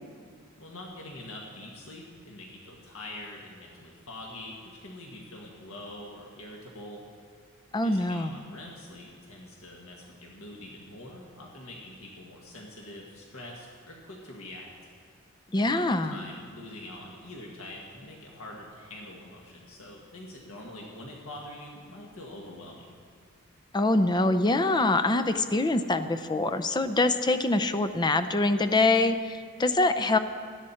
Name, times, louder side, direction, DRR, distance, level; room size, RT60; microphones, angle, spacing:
voice 1, 0.6-7.0 7.8-14.7 15.6-23.0, left 1 dB, 75° left, -1 dB, 1.7 m, -44 dB
voice 2, 7.7-8.3 15.5-16.2 23.7-30.2, left 2 dB, 20° left, 9 dB, 0.5 m, -24 dB
17.0 x 12.5 x 4.3 m, 2.1 s
head